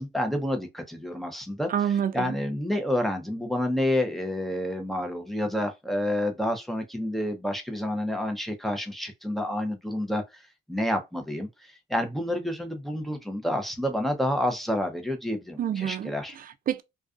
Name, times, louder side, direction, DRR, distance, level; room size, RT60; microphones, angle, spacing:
voice 1, 0.0-1.7 2.1-10.2 10.7-11.5 11.9-16.3, left 1 dB, ahead, 0.7 m, -29 dB
voice 2, 1.7-2.4 15.6-16.8, right 9 dB, 45° right, 0.4 m, -28 dB
2.4 x 2.3 x 2.4 m
cardioid pair, 90°, 20 cm